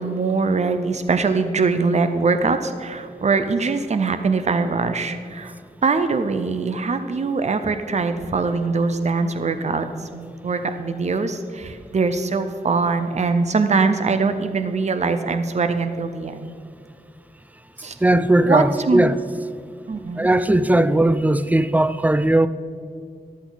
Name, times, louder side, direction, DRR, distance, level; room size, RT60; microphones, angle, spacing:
voice 1, 0.0-5.5 5.8-16.5 17.8-18.0 18.4-19.1 19.9-20.3, right 4 dB, 45° right, 0.7 m, -22 dB
voice 2, 18.0-19.1 20.2-22.5, right 1 dB, 10° right, 0.4 m, -18 dB
14.0 x 10.5 x 4.0 m
wide cardioid pair, 130°, 15 cm